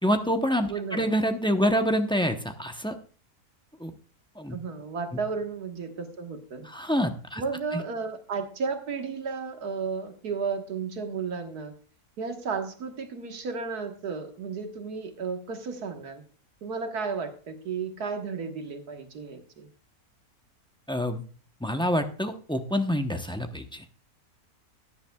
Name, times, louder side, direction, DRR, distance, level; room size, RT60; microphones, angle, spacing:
voice 1, 0.0-2.9 3.8-3.9 4.4-4.6 6.6-7.4 7.7-7.8 20.9-21.2 21.6-23.8, equal, 5° left, 5 dB, 0.5 m, -26 dB
voice 2, 0.7-1.1 4.5-6.7 7.4-11.7 12.2-16.2 16.6-19.7, right 5 dB, 85° right, 5 dB, 2.0 m, -33 dB
16.0 x 10.5 x 2.3 m, 0.40 s
omnidirectional pair, 1.6 m